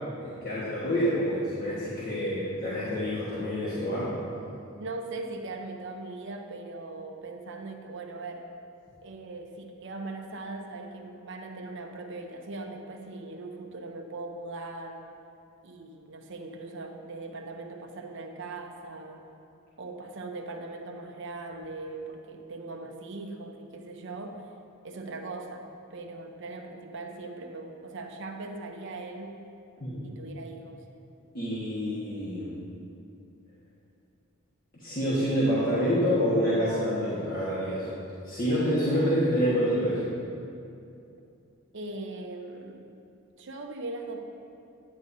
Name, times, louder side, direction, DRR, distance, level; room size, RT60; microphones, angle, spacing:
voice 1, 0.2-4.1 29.8-30.1 31.3-32.5 34.8-37.9 38.2-40.1, equal, 40° left, -9 dB, 1.3 m, -27 dB
voice 2, 4.8-8.5 9.0-15.0 15.6-19.2 19.8-24.5 24.8-29.4 30.0-30.8 41.7-42.9 43.4-44.2, right 2 dB, 60° right, 3 dB, 0.8 m, -40 dB
9.6 x 9.4 x 2.7 m, 2.6 s
head